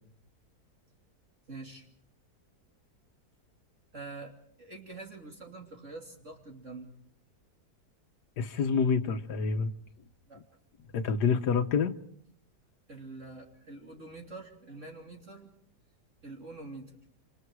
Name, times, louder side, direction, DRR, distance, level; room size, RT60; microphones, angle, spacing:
voice 1, 1.5-1.9 3.9-6.9 10.3-10.4 12.9-15.5 16.2-17.0, right 3 dB, 45° right, 3.2 m, -45 dB
voice 2, 8.4-9.7 10.9-11.9, left 5 dB, 75° left, 1.7 m, -27 dB
28.0 x 27.5 x 4.7 m
omnidirectional pair, 1.8 m